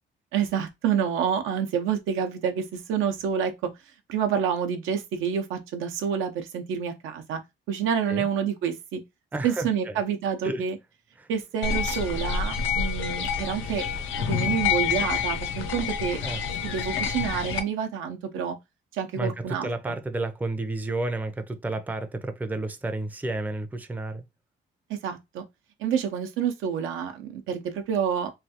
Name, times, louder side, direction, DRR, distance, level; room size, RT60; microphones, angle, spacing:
voice 1, 0.3-3.5 4.1-7.4 7.7-9.0 9.4-10.8 11.3-13.8 14.3-16.2 16.6-18.6 18.9-19.9 24.9-25.4 25.8-28.3, right 8 dB, 90° right, 0.7 m, -28 dB
voice 2, 9.3-10.0 10.4-10.6 11.2-11.3 16.2-16.4 19.1-24.2, right 2 dB, 10° right, 0.4 m, -31 dB
sound 1, 11.6-17.6, left 7 dB, 90° left, 0.6 m, -28 dB
3.2 x 2.3 x 2.8 m
cardioid pair, 90°, 20 cm